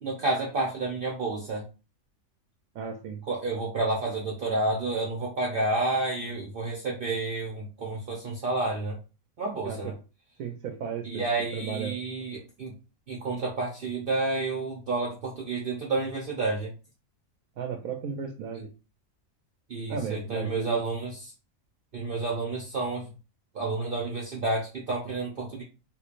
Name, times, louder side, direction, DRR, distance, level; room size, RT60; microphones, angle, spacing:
voice 1, 0.0-1.7 3.3-9.0 9.4-9.9 11.0-12.7 13.1-16.7 18.5-18.6 19.7-21.3 21.9-23.1 23.5-25.6, right 2 dB, 50° right, -3 dB, 0.8 m, -30 dB
voice 2, 2.7-3.2 9.6-9.9 10.4-11.2 11.5-12.0 17.6-18.7 19.9-20.8, right 6 dB, 90° right, 4 dB, 1.0 m, -34 dB
3.5 x 3.1 x 2.5 m, 0.32 s
omnidirectional pair, 1.4 m